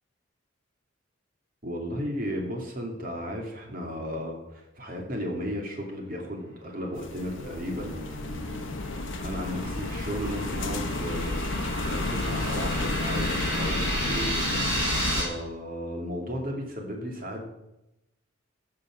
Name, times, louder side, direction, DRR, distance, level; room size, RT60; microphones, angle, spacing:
voice 1, 1.6-11.3 11.8-17.5, equal, 45° right, 1 dB, 2.6 m, -35 dB
sound 1, 7.0-15.2, left 2 dB, 75° left, 0.7 m, -32 dB
sound 2, 7.5-15.2, right 1 dB, 25° right, 5.1 m, -33 dB
sound 3, 8.8-15.2, equal, 70° right, 4.4 m, -43 dB
14.0 x 6.6 x 6.3 m, 0.91 s
head